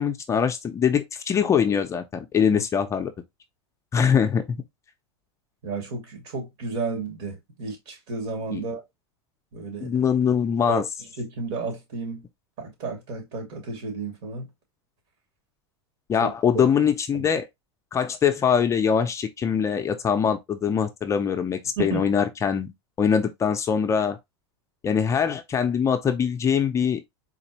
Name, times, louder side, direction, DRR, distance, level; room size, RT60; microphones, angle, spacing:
voice 1, 0.0-3.1 3.9-4.4 8.5-8.6 9.8-10.8 16.1-17.5 17.9-24.2 24.8-27.0, left 7 dB, 20° left, 0.5 m, -23 dB
voice 2, 5.6-8.8 9.5-10.0 10.7-10.8 11.2-12.2 12.6-14.5 16.2-16.7 17.1-17.2 21.8-22.0, right 4 dB, 65° right, 2.3 m, -32 dB
4.1 x 2.5 x 2.9 m
supercardioid pair, 125°, 14 cm